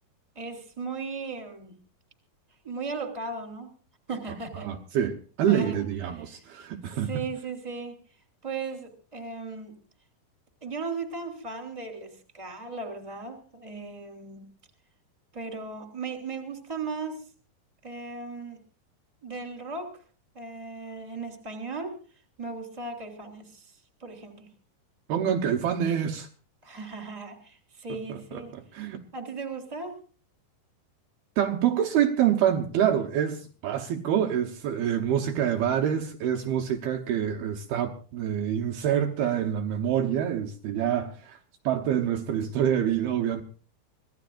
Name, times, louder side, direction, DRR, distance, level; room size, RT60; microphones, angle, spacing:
voice 1, 0.3-1.7 2.6-3.7 4.1-4.7 5.5-5.8 6.1-6.2 7.0-8.0 8.4-9.7 10.6-14.5 15.3-17.2 17.8-18.6 19.2-20.0 20.3-22.0 22.4-23.7 24.0-24.5 26.6-28.5 29.1-30.0, right 4 dB, 10° right, 3.1 m, -37 dB
voice 2, 4.5-7.1 25.1-26.3 28.1-29.0 31.4-41.4 41.6-43.4, right 9 dB, 70° right, 2.9 m, -26 dB
25.0 x 18.0 x 2.5 m
omnidirectional pair, 4.9 m